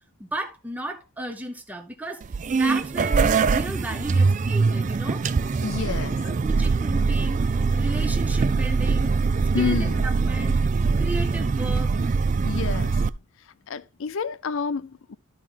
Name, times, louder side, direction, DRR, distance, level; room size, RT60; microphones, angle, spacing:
voice 1, 0.2-2.2 2.5-5.2 6.2-9.1 9.6-10.6 11.0-11.9, right 1 dB, 5° right, 0.7 m, -34 dB
sound 1, 2.2-13.1, right 4 dB, 35° right, 0.3 m, -23 dB
voice 2, 5.6-6.2 9.5-10.1 12.4-13.0 13.7-15.2, left 5 dB, 60° left, 0.5 m, -29 dB
12.5 x 4.7 x 3.7 m
head